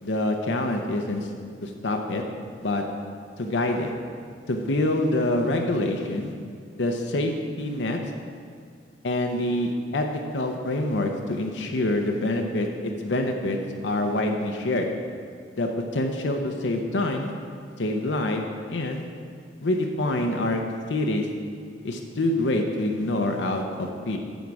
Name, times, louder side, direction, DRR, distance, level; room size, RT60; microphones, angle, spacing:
voice 1, 0.0-1.3 1.6-2.2 2.6-2.8 3.4-3.9 4.5-6.3 6.8-7.3 7.6-8.0 9.0-10.1 10.3-14.9 15.5-17.3 17.8-18.4 18.7-19.1 19.6-20.6 20.9-21.3 21.8-24.2, left 1 dB, 80° left, 3 dB, 0.7 m, -26 dB
9.2 x 7.2 x 4.8 m, 2.2 s
head